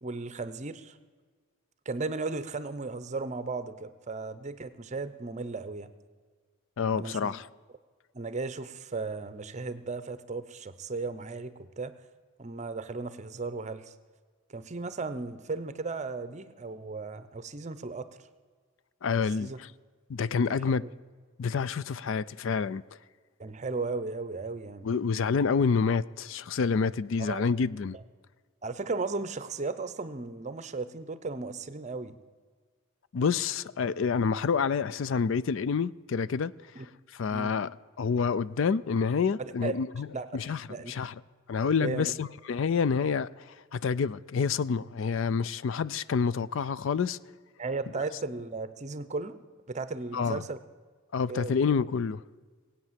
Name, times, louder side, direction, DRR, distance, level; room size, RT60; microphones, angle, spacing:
voice 1, 0.0-1.0 1.9-5.9 7.0-7.3 8.1-11.9 12.4-13.9 14.5-18.1 19.4-19.6 20.2-20.9 23.4-24.9 27.2-27.4 27.9-28.0 28.6-32.1 36.8-36.9 37.3-37.5 39.4-39.7 40.1-41.0 41.8-42.1 47.6-49.4 49.7-50.6 51.3-51.6, right 3 dB, 35° right, 0.7 m, -36 dB
voice 2, 6.8-7.5 19.0-19.7 20.1-20.8 21.4-22.8 24.8-28.0 33.1-36.5 37.1-37.7 38.0-40.1 40.3-41.1 41.5-43.5 43.7-47.2 50.1-50.4 51.1-52.2, left 5 dB, 60° left, 0.4 m, -28 dB
19.0 x 8.7 x 7.4 m
head